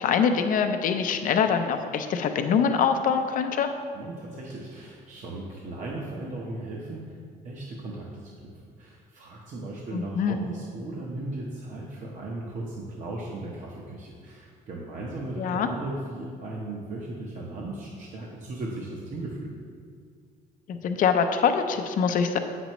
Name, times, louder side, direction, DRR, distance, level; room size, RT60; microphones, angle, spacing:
voice 1, 0.0-3.7 9.9-10.4 15.4-15.7 20.7-22.4, left 6 dB, 55° left, 7 dB, 0.6 m, -24 dB
voice 2, 3.9-7.2 7.4-8.3 8.8-19.5, right 2 dB, 45° right, -3 dB, 0.9 m, -37 dB
7.9 x 6.0 x 3.0 m, 2.1 s
cardioid pair, 110°, 17 cm